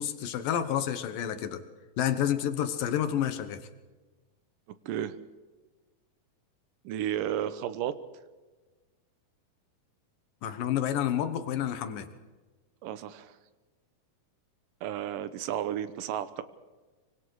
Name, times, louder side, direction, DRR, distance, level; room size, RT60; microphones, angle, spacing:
voice 1, 0.0-1.6 2.0-3.6 10.4-12.1, left 10 dB, 70° left, 10 dB, 2.8 m, -29 dB
voice 2, 4.9-5.2 6.8-7.9 12.8-13.3 14.8-16.4, right 10 dB, 70° right, 13 dB, 2.4 m, -32 dB
24.5 x 24.5 x 4.8 m, 1.3 s
omnidirectional pair, 4.3 m